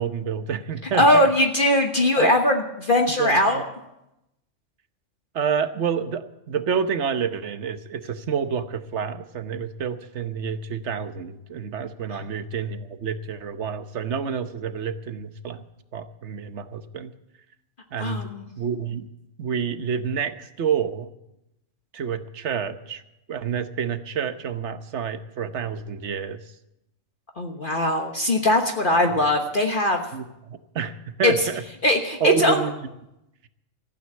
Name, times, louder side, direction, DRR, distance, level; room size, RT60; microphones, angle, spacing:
voice 1, 0.0-1.3 2.2-2.3 3.2-3.6 5.3-15.6 15.9-17.1 17.9-18.2 18.6-19.1 19.4-21.1 21.9-23.0 23.3-26.4 30.1-31.6 32.2-32.7, right 7 dB, 60° right, 10 dB, 1.2 m, -28 dB
voice 2, 0.9-3.6 12.1-12.2 18.0-18.5 27.4-30.0 31.2-31.5 31.8-32.6, left 1 dB, 40° left, 3 dB, 1.3 m, -20 dB
15.0 x 9.4 x 8.5 m, 0.88 s
omnidirectional pair, 1.4 m